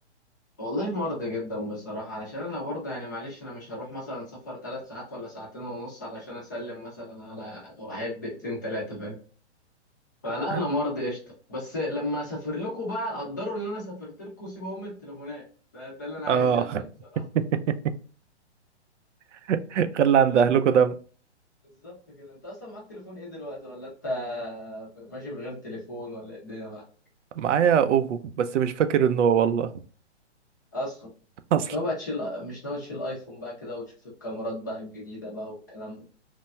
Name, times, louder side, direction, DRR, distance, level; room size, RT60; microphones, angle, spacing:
voice 1, 0.6-9.2 10.2-11.2 11.5-15.5 15.7-16.7 17.1-17.2 20.2-20.5 21.8-26.9 30.7-31.1 31.7-36.0, left 1 dB, 15° left, 0.4 m, -34 dB
voice 2, 16.3-16.8 19.5-21.0 27.4-29.7 31.5-31.7, right 8 dB, 85° right, 0.5 m, -22 dB
3.2 x 2.1 x 2.3 m
hypercardioid pair, 155°, 35 cm